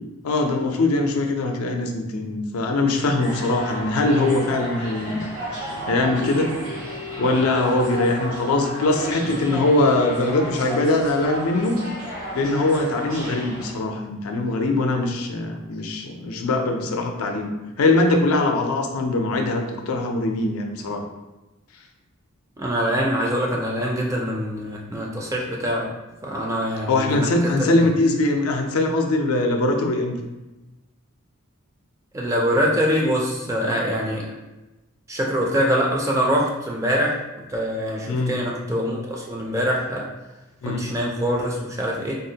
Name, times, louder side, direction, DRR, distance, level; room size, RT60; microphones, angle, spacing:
voice 1, 0.2-5.2 5.9-6.5 7.2-11.8 12.3-17.5 17.8-21.0 26.9-30.1 38.1-38.3 40.6-40.9, left 2 dB, 80° left, 3 dB, 0.4 m, -22 dB
sound 1, 3.2-13.7, equal, 85° right, 1.1 m, -33 dB
sound 2, 5.4-8.4 8.9-9.8, equal, 60° right, 0.8 m, -36 dB
voice 2, 22.6-25.9 26.2-27.9 32.1-34.3 35.1-37.2 37.5-40.1 40.6-42.2, equal, 15° right, -2 dB, 0.3 m, -24 dB
3.6 x 2.0 x 2.7 m, 1.1 s
head